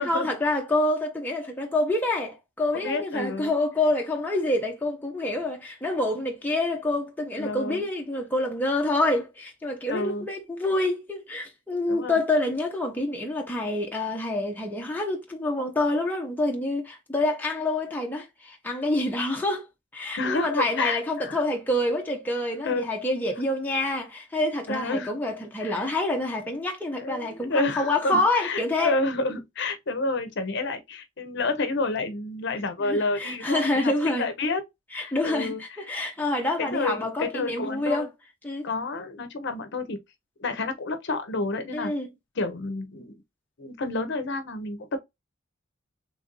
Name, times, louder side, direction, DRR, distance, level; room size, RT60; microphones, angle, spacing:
voice 1, 0.0-19.7 19.9-29.0 32.8-34.3 34.9-38.1 38.4-38.7 41.7-42.1, left 2 dB, 10° left, 0.7 m, -27 dB
voice 2, 2.7-3.5 7.4-7.8 9.9-10.3 11.9-12.2 20.2-21.4 22.6-22.9 24.7-25.1 25.6-25.9 27.0-34.6 34.9-35.6 36.6-38.1 38.6-40.0 40.4-41.9 42.4-43.2 43.6-45.0, left 2 dB, 60° left, 0.7 m, -29 dB
3.3 x 2.6 x 3.7 m
head